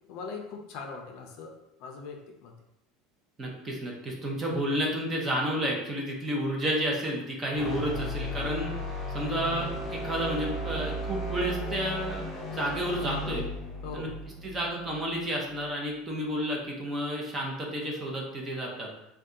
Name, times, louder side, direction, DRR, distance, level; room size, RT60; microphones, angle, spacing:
voice 1, 0.1-1.5 1.8-2.5 13.8-14.1, left 5 dB, 50° left, 2 dB, 0.5 m, -40 dB
voice 2, 3.4-8.8 9.1-12.3 12.5-13.4 13.9-14.1 14.4-18.9, equal, 15° right, -1 dB, 0.6 m, -31 dB
sound 1, 7.5-15.7, equal, 25° left, 0.9 m, -35 dB
2.7 x 2.2 x 3.5 m, 0.84 s
cardioid pair, 165°, 0 cm